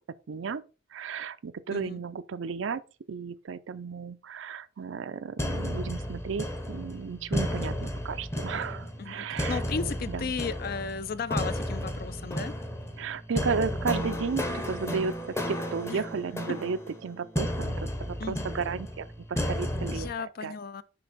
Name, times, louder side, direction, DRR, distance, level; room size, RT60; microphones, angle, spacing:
voice 1, 0.3-0.6 0.9-2.8 3.1-9.6 10.1-10.3 13.0-20.6, right 5 dB, 80° right, 0.5 m, -34 dB
sound 1, 5.4-20.1, equal, 15° left, 0.7 m, -33 dB
voice 2, 9.0-12.5 15.9-16.0 18.2-18.5 19.9-20.8, left 5 dB, 50° left, 0.4 m, -35 dB
6.8 x 5.1 x 4.0 m
head